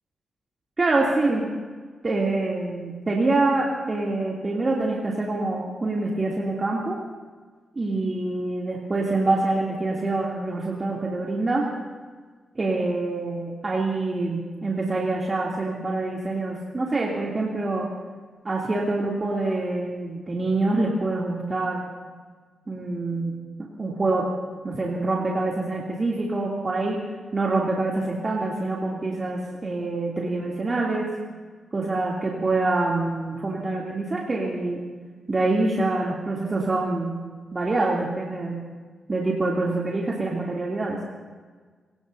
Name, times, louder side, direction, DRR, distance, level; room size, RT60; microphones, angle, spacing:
voice 1, 0.8-1.5 2.0-7.0 7.7-11.7 12.5-17.9 18.4-21.9 22.7-23.3 23.8-24.3 24.6-27.0 27.3-31.1 31.7-34.8 35.3-37.2 37.5-38.6 39.1-41.0, right 2 dB, 40° right, -4 dB, 3.0 m, -25 dB
27.0 x 18.0 x 2.8 m, 1.5 s
supercardioid pair, 45°, 0 cm